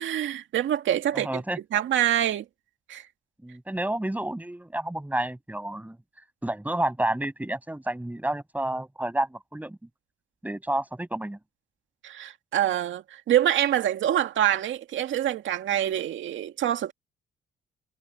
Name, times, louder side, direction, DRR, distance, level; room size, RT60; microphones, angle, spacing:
voice 1, 0.0-1.4 1.7-2.4 2.9-3.1 12.0-16.9, right 11 dB, 75° right, 2.1 m, -25 dB
voice 2, 1.1-1.6 3.4-6.0 6.4-9.8 10.4-11.4, right 1 dB, 10° right, 7.7 m, -30 dB
cardioid pair, 90°, 20 cm